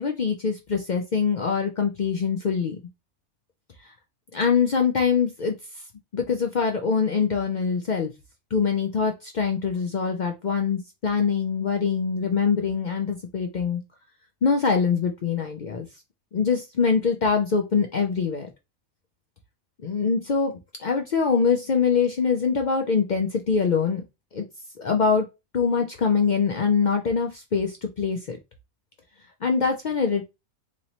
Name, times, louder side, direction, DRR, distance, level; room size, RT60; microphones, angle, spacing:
voice 1, 0.0-2.8 3.8-3.9 4.3-5.6 6.1-8.1 8.5-13.8 14.4-15.9 16.3-18.5 19.8-20.5 20.8-24.0 24.3-24.4 24.8-25.3 25.5-28.4 29.4-30.2, left 5 dB, 90° left, 4 dB, 0.4 m, -24 dB
4.1 x 3.0 x 2.8 m, 0.24 s
omnidirectional pair, 1.5 m